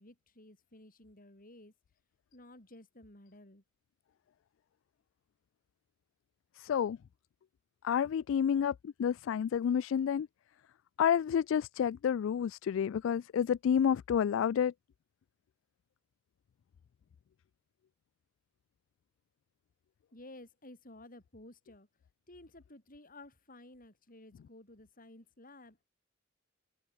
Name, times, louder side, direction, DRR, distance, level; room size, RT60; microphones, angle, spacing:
voice 1, 0.0-1.7 2.3-3.6 20.1-21.9 22.3-25.9, left 1 dB, 45° left, 6.6 m, -54 dB
voice 2, 6.6-7.0 7.8-10.3 11.0-14.7, left 8 dB, 70° left, 0.3 m, -29 dB
head